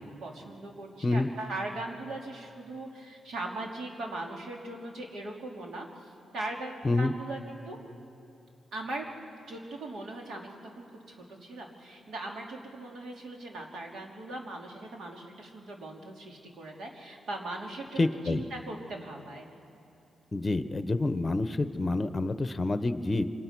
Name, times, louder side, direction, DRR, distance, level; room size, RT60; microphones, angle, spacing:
voice 1, 0.0-7.8 8.7-9.1 9.5-19.5, right 2 dB, 70° right, 0 dB, 3.3 m, -40 dB
voice 2, 18.0-18.4 20.3-23.2, left 2 dB, 25° left, 11 dB, 0.9 m, -28 dB
28.0 x 25.5 x 6.1 m, 2.7 s
cardioid pair, 120°, 0 cm